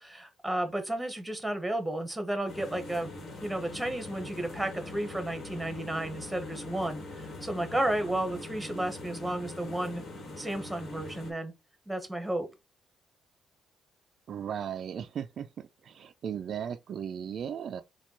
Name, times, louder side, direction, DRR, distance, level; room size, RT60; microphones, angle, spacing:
voice 1, 0.0-3.1 3.4-10.0 10.4-11.5 11.9-12.5, right 1 dB, 5° right, 1.1 m, -32 dB
sound 1, 2.5-11.3, left 2 dB, 55° left, 1.6 m, -42 dB
voice 2, 14.3-17.8, right 8 dB, 60° right, 0.3 m, -36 dB
4.2 x 2.3 x 4.3 m
cardioid pair, 90°, 0 cm